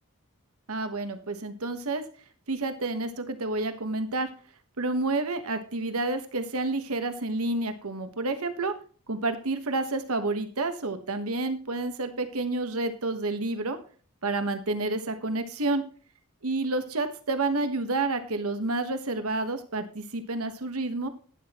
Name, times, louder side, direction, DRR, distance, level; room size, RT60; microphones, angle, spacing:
voice 1, 0.7-2.0 2.5-4.3 4.8-8.7 9.1-13.8 14.2-15.8 16.4-21.1, right 2 dB, 85° right, 8 dB, 1.3 m, -29 dB
11.5 x 9.9 x 3.0 m, 0.41 s
head